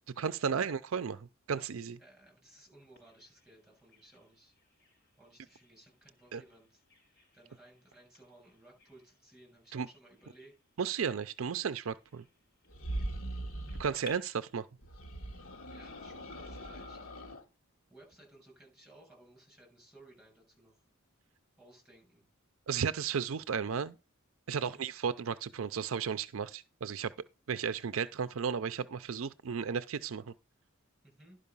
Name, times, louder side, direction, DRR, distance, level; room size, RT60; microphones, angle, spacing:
voice 1, 0.2-2.0 6.3-6.4 9.7-9.9 10.8-12.2 13.8-14.7 22.7-24.0 24.5-27.1 27.5-30.3, right 6 dB, 70° right, 0.5 m, -34 dB
voice 2, 2.0-4.5 5.2-6.8 7.3-10.5 15.7-17.0 17.9-20.8 21.6-22.3 24.6-24.8 31.0-31.4, right 1 dB, 5° right, 6.8 m, -59 dB
Bird vocalization bird call bird song, 3.0-14.1, left 1 dB, 55° left, 4.8 m, -60 dB
sound 1, 12.7-13.9 14.8-17.4, right 1 dB, 80° left, 1.9 m, -40 dB
11.5 x 5.2 x 5.4 m
head